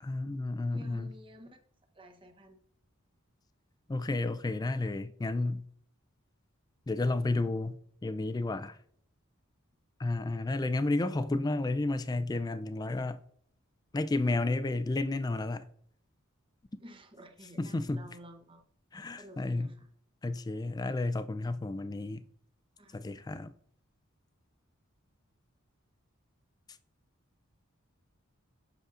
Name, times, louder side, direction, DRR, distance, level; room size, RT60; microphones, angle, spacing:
voice 1, 0.0-1.1 3.9-5.6 6.9-8.8 10.0-13.2 13.9-15.7 17.6-18.1 18.9-19.7 20.2-22.2 22.9-23.5, left 2 dB, 20° left, 0.3 m, -32 dB
voice 2, 0.7-1.6 1.9-2.6 16.8-18.6 19.2-19.9 22.8-23.3, equal, 25° right, 0.8 m, -52 dB
7.9 x 6.3 x 2.5 m
head